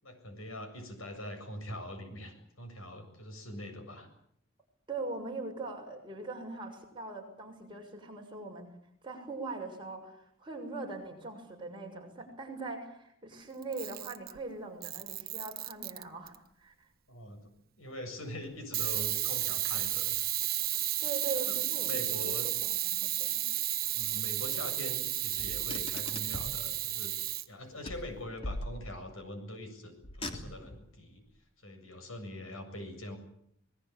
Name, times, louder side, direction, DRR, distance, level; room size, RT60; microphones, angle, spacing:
voice 1, 0.0-4.1 17.1-17.4 17.8-20.2 21.5-22.5 23.9-27.1 27.5-31.2 31.6-33.2, left 1 dB, 85° left, 7 dB, 7.5 m, -43 dB
voice 2, 4.9-8.7 9.0-16.9 21.0-21.9 22.2-23.4, right 3 dB, 25° right, 1 dB, 6.7 m, -41 dB
Camera, 13.6-14.4 14.8-16.3 18.7-27.5, right 15 dB, 50° right, 1.3 m, -33 dB
Car, 25.4-26.6 27.8-29.2 30.0-30.9, left 1 dB, 30° left, 3.0 m, -41 dB
26.5 x 20.5 x 8.6 m, 0.69 s
head